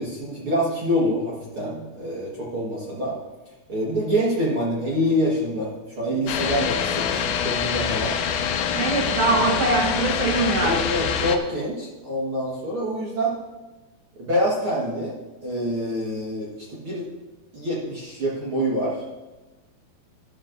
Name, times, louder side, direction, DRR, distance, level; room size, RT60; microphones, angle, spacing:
voice 1, 0.0-3.2 3.7-8.1 9.3-9.4 10.6-13.3 14.2-17.1 17.5-19.0, equal, 50° right, -5 dB, 1.6 m, -26 dB
sound 1, 6.3-11.4, left 7 dB, 85° left, 2.6 m, -25 dB
voice 2, 8.7-10.8, right 3 dB, 70° right, -2 dB, 1.4 m, -22 dB
12.5 x 12.0 x 2.6 m, 1.1 s
omnidirectional pair, 4.4 m